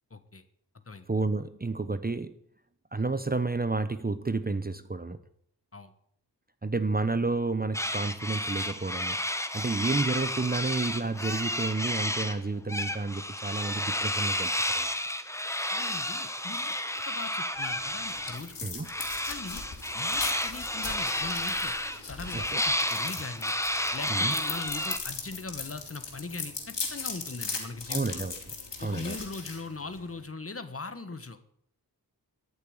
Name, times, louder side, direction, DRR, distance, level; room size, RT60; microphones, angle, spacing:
voice 1, 0.1-0.4 0.9-1.1 5.7-5.9 15.7-16.7 17.1-18.9 19.3-19.6 19.9-21.7 22.0-23.5 23.9-28.3 28.8-31.5, left 3 dB, 35° left, 11 dB, 1.4 m, -40 dB
voice 2, 1.1-2.4 2.9-5.2 6.6-14.9 18.6-18.9 22.3-22.6 24.1-24.3 27.9-28.4 28.8-29.2, right 3 dB, 20° right, 12 dB, 0.9 m, -31 dB
sound 1, 7.7-12.4 12.7-18.4 18.9-25.0, left 1 dB, 5° left, 1.2 m, -31 dB
sound 2, 17.6-30.2, left 4 dB, 85° left, 3.6 m, -39 dB
13.5 x 7.0 x 9.6 m, 0.69 s
wide cardioid pair, 75°, 41 cm